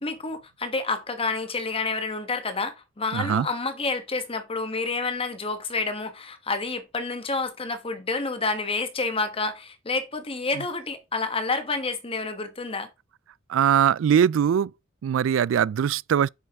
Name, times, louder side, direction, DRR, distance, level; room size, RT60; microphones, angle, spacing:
voice 1, 0.0-12.9, left 3 dB, 30° left, 1.3 m, -29 dB
voice 2, 3.1-3.5 13.5-14.7 15.0-16.3, right 8 dB, 70° right, 0.3 m, -21 dB
7.5 x 5.6 x 3.6 m
head